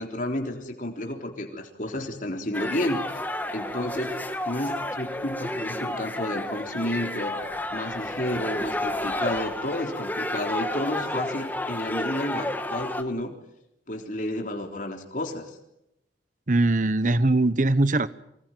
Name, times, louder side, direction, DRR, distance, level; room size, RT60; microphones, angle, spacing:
voice 1, 0.0-3.0 3.5-7.4 7.7-13.4 13.9-15.5, left 1 dB, 45° left, 3 dB, 3.8 m, -31 dB
sound 1, 2.5-13.0, left 1 dB, 10° left, 1.8 m, -31 dB
voice 2, 16.5-18.1, right 2 dB, 45° right, 15 dB, 1.0 m, -21 dB
25.5 x 20.0 x 9.2 m, 0.85 s
head